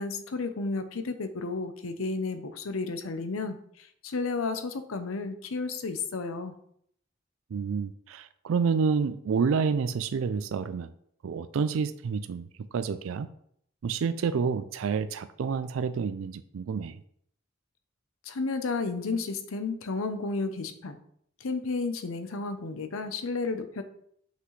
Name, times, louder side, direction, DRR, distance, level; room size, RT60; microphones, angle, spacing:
voice 1, 0.0-6.5 18.2-21.0 21.4-23.8, left 3 dB, 90° left, 9 dB, 0.7 m, -32 dB
voice 2, 7.5-10.9 11.2-12.5 12.7-13.3 13.8-17.0, right 5 dB, 75° right, 12 dB, 0.4 m, -29 dB
5.9 x 5.7 x 3.2 m, 0.68 s
head